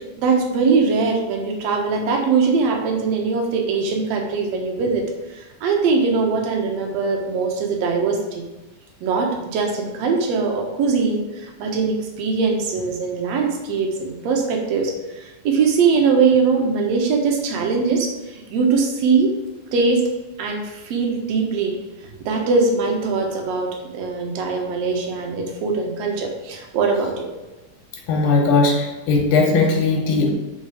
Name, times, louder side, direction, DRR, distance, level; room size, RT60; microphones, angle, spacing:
voice 1, 0.0-5.0 5.3-8.4 9.0-19.4 19.7-20.1 20.4-21.8 22.2-27.3, right 4 dB, 60° right, 1 dB, 2.2 m, -21 dB
voice 2, 28.1-30.3, left 3 dB, 75° left, 1 dB, 2.9 m, -18 dB
8.5 x 4.0 x 6.3 m, 1.1 s
omnidirectional pair, 3.8 m